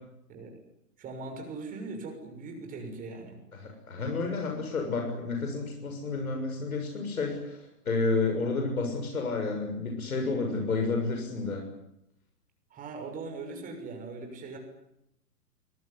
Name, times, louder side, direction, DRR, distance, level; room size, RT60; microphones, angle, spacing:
voice 1, 1.0-3.4 12.7-14.6, right 3 dB, 15° right, 4 dB, 6.4 m, -40 dB
voice 2, 3.6-11.6, left 3 dB, 60° left, 2 dB, 6.9 m, -30 dB
24.0 x 23.0 x 9.9 m, 0.80 s
figure-of-eight pair, 120°, 47 cm